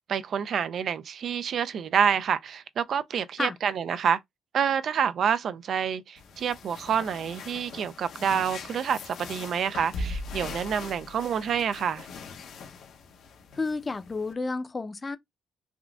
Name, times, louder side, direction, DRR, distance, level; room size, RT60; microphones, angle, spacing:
voice 1, 0.1-4.2 4.5-12.1, right 7 dB, 60° right, 0.3 m, -28 dB
sound 1, 6.2-14.3, left 3 dB, 75° left, 0.7 m, -40 dB
voice 2, 13.5-15.2, left 3 dB, 25° left, 0.5 m, -31 dB
3.5 x 2.4 x 2.3 m
cardioid pair, 90°, 0 cm